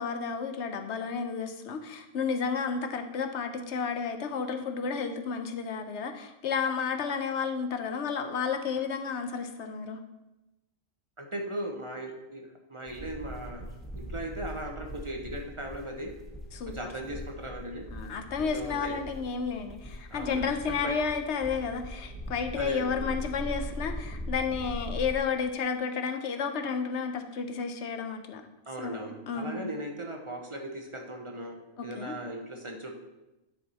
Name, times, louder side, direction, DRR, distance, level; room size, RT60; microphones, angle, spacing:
voice 1, 0.0-10.0 16.5-16.7 17.9-28.4 28.8-29.7 31.8-32.2, left 5 dB, 65° left, 6 dB, 0.9 m, -32 dB
voice 2, 11.2-13.6 14.0-16.1 16.7-17.8 18.5-19.0 20.1-20.9 22.5-23.0 28.7-31.6 31.8-32.9, right 1 dB, 30° right, 2 dB, 0.7 m, -38 dB
sound 1, 12.9-25.2, equal, ahead, 1.1 m, -40 dB
10.0 x 4.6 x 4.2 m, 0.97 s
omnidirectional pair, 1.4 m